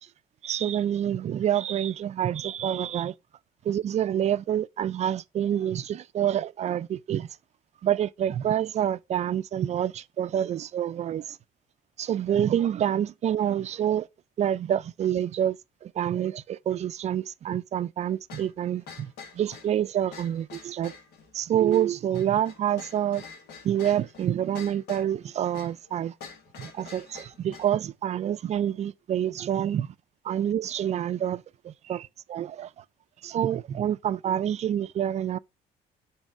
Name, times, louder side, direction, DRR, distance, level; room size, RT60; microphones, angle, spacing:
voice 1, 0.4-3.1 3.6-7.3 7.8-11.4 12.0-14.1 14.4-20.9 21.3-23.2 23.6-26.1 26.6-29.9 30.2-32.8 33.2-35.4, right 10 dB, 40° right, 0.4 m, -27 dB
sound 1, 18.3-27.8, left 5 dB, 75° left, 1.4 m, -47 dB
7.3 x 3.2 x 4.3 m
cardioid pair, 110°, 17 cm